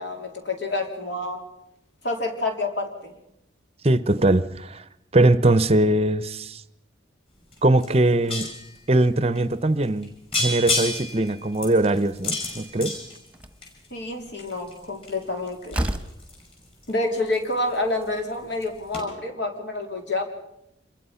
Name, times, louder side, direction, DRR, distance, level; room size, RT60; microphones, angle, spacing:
voice 1, 0.0-1.4 2.0-3.2 13.9-15.8 16.9-20.2, left 2 dB, 70° left, 4 dB, 3.6 m, -28 dB
voice 2, 3.8-4.8 5.1-6.6 7.6-8.5 8.9-10.1 10.4-12.9, right 2 dB, 30° right, 15 dB, 0.7 m, -21 dB
sound 1, 7.5-7.6 7.8-8.7 9.4-9.5 9.8-10.1 10.3-13.9 14.4-17.7 18.0-18.4 18.6-18.7 18.9-19.0, left 2 dB, 30° left, 7.0 m, -30 dB
Slam, 13.3-13.7 15.2-15.3 15.7-16.2, right 1 dB, 5° right, 1.2 m, -28 dB
26.5 x 22.0 x 5.7 m, 0.86 s
head